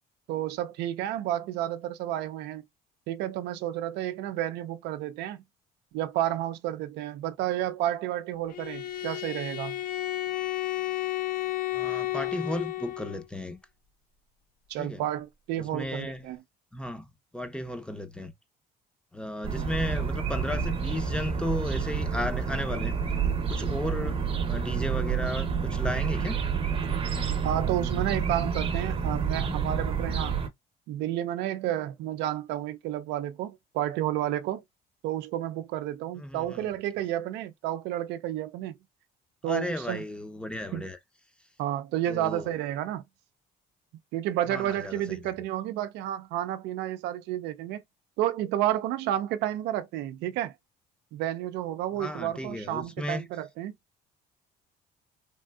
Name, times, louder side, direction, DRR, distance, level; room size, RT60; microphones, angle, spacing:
voice 1, 0.3-2.6 3.1-5.4 5.9-9.8 14.7-16.4 27.4-30.4 30.9-34.6 35.0-38.8 39.4-40.0 40.7-40.8 41.6-43.0 44.1-47.8 48.2-50.5 51.1-53.7, right 12 dB, 85° right, 0.4 m, -31 dB
Bowed string instrument, 8.5-13.2, left 15 dB, 55° left, 0.5 m, -32 dB
voice 2, 11.7-13.6 14.8-15.0 15.6-16.4 16.7-18.3 19.1-23.0 23.5-26.4 36.1-36.7 39.4-41.0 42.1-42.5 44.5-45.3 51.9-53.2, left 1 dB, 5° left, 0.5 m, -34 dB
sound 1, 19.4-30.5, right 6 dB, 35° right, 0.7 m, -29 dB
3.3 x 2.6 x 2.2 m
cardioid pair, 110°, 17 cm